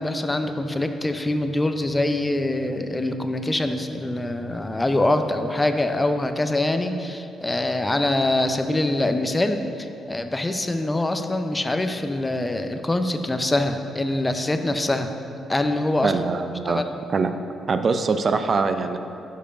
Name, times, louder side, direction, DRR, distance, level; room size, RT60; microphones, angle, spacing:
voice 1, 0.0-15.1 15.5-16.1 16.7-16.9, left 1 dB, 20° left, 7 dB, 0.6 m, -24 dB
voice 2, 16.0-16.8 17.1-17.4 17.7-19.0, right 4 dB, 50° right, 8 dB, 0.4 m, -23 dB
6.7 x 5.1 x 5.1 m, 2.8 s
hypercardioid pair, 50°, 0 cm